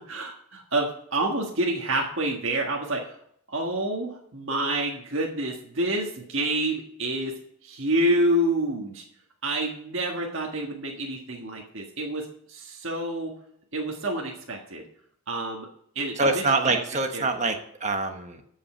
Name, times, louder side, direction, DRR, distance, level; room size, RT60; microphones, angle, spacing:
voice 1, 0.1-3.2 3.5-7.3 7.6-9.0 9.4-13.3 13.7-14.8 15.3-15.7 15.9-16.8 17.1-17.3, right 1 dB, 60° right, -1 dB, 1.7 m, -28 dB
voice 2, 16.2-18.4, right 3 dB, 30° right, 5 dB, 1.2 m, -25 dB
13.5 x 5.6 x 6.7 m, 0.68 s
head